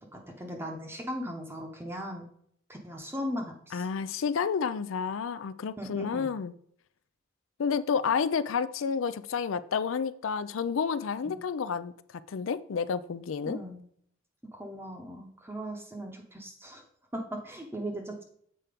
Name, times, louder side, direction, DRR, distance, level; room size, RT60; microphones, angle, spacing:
voice 1, 0.1-2.2 2.7-3.9 5.8-6.3 11.2-11.3 13.4-13.8 14.5-16.8 17.1-18.2, equal, 10° right, 0.8 m, -38 dB
voice 2, 3.7-6.5 7.6-11.9 12.3-13.6, left 6 dB, 75° left, 0.4 m, -30 dB
7.7 x 4.4 x 5.0 m
head